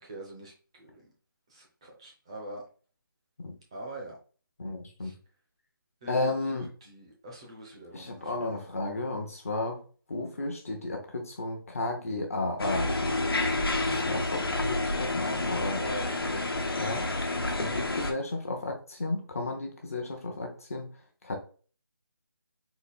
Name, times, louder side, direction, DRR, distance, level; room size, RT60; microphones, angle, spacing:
voice 1, 0.0-1.1 1.5-2.6 3.7-4.2 5.0-5.1 6.0-8.7 15.8-16.4, right 1 dB, 15° right, -1 dB, 0.7 m, -44 dB
voice 2, 4.6-5.1 6.1-6.7 7.9-9.8 10.1-12.9 14.0-15.8 16.8-17.0 17.5-20.9 21.2-21.4, left 2 dB, 40° left, 2 dB, 0.8 m, -33 dB
sound 1, 12.6-18.1, left 2 dB, 85° left, 1.1 m, -29 dB
4.1 x 2.7 x 4.1 m, 0.39 s
figure-of-eight pair, 175°, 12 cm